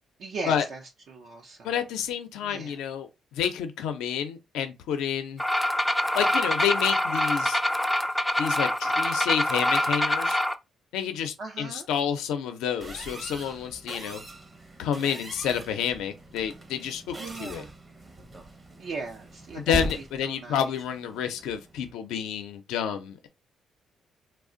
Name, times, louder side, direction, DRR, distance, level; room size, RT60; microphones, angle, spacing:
voice 1, 0.2-0.8 1.1-1.8 2.4-2.8 11.4-11.9 17.2-17.7 18.8-20.6, right 3 dB, 65° right, 0.5 m, -39 dB
voice 2, 1.6-5.4 6.1-7.6 8.4-10.4 10.9-14.2 14.8-17.1 17.4-17.6 19.5-23.3, left 8 dB, 90° left, 0.5 m, -29 dB
sound 1, 5.4-10.5, left 1 dB, 5° left, 0.4 m, -25 dB
sound 2, 12.8-21.9, right 1 dB, 30° right, 0.7 m, -40 dB
2.4 x 2.0 x 3.7 m
cardioid pair, 80°, 0 cm